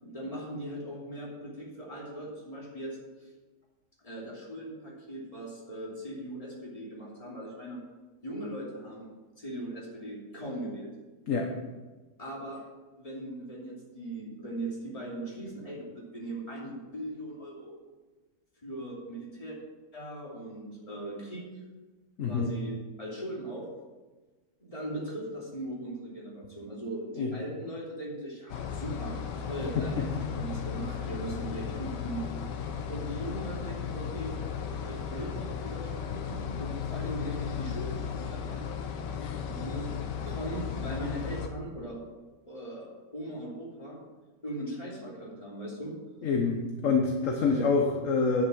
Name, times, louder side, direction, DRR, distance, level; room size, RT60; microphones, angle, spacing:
voice 1, 0.0-3.3 4.0-7.8 8.2-9.1 9.4-10.9 12.2-12.7 13.0-17.7 18.6-19.6 19.9-21.5 22.3-23.7 24.6-32.2 32.9-38.7 39.4-42.0 42.4-44.0 44.4-45.9 47.4-47.6, right 1 dB, 20° left, -4 dB, 2.9 m, -39 dB
voice 2, 22.2-22.5 27.2-27.3 46.2-48.4, left 4 dB, 55° left, 2 dB, 1.3 m, -26 dB
sound 1, 28.5-41.5, left 7 dB, 90° left, 1.5 m, -35 dB
10.5 x 6.5 x 6.2 m, 1.2 s
omnidirectional pair, 1.8 m